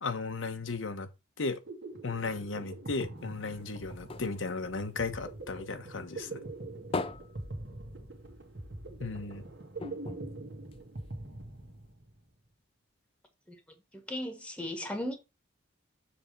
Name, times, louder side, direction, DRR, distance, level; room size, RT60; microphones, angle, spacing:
voice 1, 0.0-1.1 1.4-1.6 2.0-6.4 9.0-9.4, left 3 dB, 85° left, 0.9 m, -35 dB
sound 1, 1.4-12.2, right 2 dB, 65° right, 1.6 m, -43 dB
sound 2, 3.2-5.8 6.2-8.5 8.8-8.9 9.2-9.3 9.8-11.3 11.9-12.0, left 3 dB, 30° left, 0.4 m, -41 dB
voice 2, 13.9-15.2, left 1 dB, 5° left, 1.2 m, -37 dB
7.0 x 3.4 x 5.1 m
head